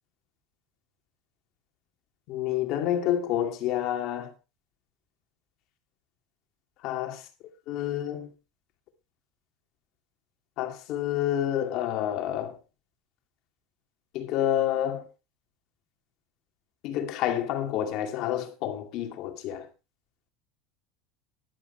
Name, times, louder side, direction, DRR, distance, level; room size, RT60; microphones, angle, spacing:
voice 1, 2.3-4.3 6.8-7.2 7.7-8.3 10.6-12.6 14.1-15.0 16.8-19.7, left 11 dB, 50° left, 2.2 m, -28 dB
13.5 x 11.5 x 3.3 m
cardioid pair, 165°, 0 cm